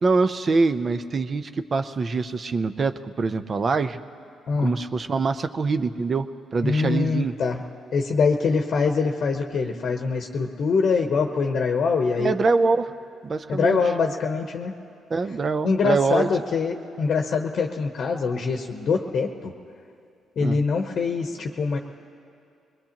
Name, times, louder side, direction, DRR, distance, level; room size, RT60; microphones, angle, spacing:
voice 1, 0.0-4.0 4.6-7.3 12.2-12.9 13.2-13.8 15.1-16.3 20.4-20.6, right 4 dB, 40° right, 11 dB, 0.6 m, -24 dB
voice 2, 6.6-7.6 7.9-12.3 13.5-14.7 15.6-19.5 20.4-21.8, left 4 dB, 60° left, 3 dB, 0.9 m, -24 dB
22.5 x 20.5 x 3.0 m, 2.5 s
cardioid pair, 90°, 0 cm